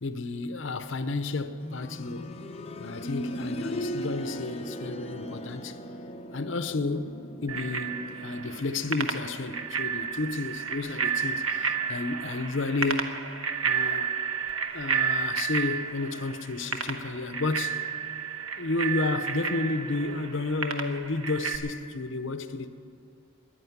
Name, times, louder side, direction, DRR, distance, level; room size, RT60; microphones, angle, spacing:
voice 1, 0.0-2.4 2.8-5.8 6.3-13.1 13.6-14.1 14.7-17.8 18.5-22.7, left 3 dB, 60° left, 0.7 m, -31 dB
sound 1, 1.6-12.4 12.7-12.8 13.7-13.8, equal, 30° left, 0.7 m, -39 dB
Bicycle bell, 7.5-21.6, right 6 dB, 85° right, 1.2 m, -31 dB
14.0 x 11.0 x 9.3 m
head